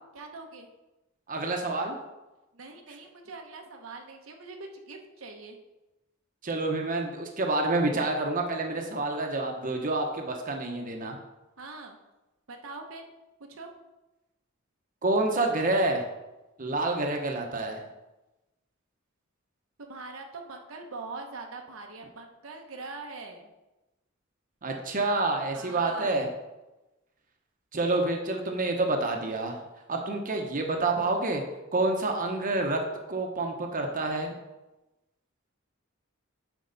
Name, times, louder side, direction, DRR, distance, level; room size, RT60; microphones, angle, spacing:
voice 1, 0.1-0.7 2.5-5.6 11.6-12.0 12.5-13.1 13.5-13.7 19.8-23.5 25.5-26.2, right 3 dB, 85° right, 3 dB, 0.9 m, -42 dB
voice 2, 1.3-2.0 6.4-11.2 15.0-16.0 16.6-17.8 24.6-26.3 27.7-29.6 29.9-31.4 31.7-32.8 33.1-34.3, right 2 dB, 40° right, 2 dB, 0.9 m, -28 dB
9.6 x 4.5 x 3.9 m, 1.0 s
head